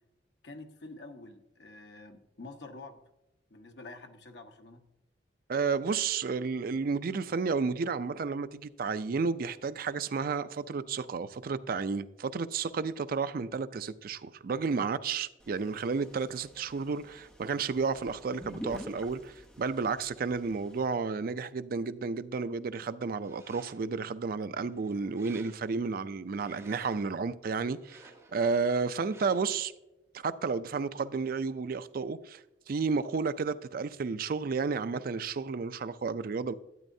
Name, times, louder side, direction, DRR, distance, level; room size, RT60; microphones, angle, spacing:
voice 1, 0.4-3.0 3.5-4.8, left 2 dB, 70° left, 1.1 m, -47 dB
voice 2, 5.5-29.7 30.1-32.4 32.7-36.5, right 4 dB, 55° right, 0.4 m, -32 dB
sound 1, 15.4-20.9, equal, 5° left, 0.9 m, -48 dB
sound 2, 23.1-24.0 24.5-25.9 26.3-27.2 27.7-28.5 29.1-29.6, right 2 dB, 15° right, 1.6 m, -56 dB
12.0 x 9.2 x 2.7 m
head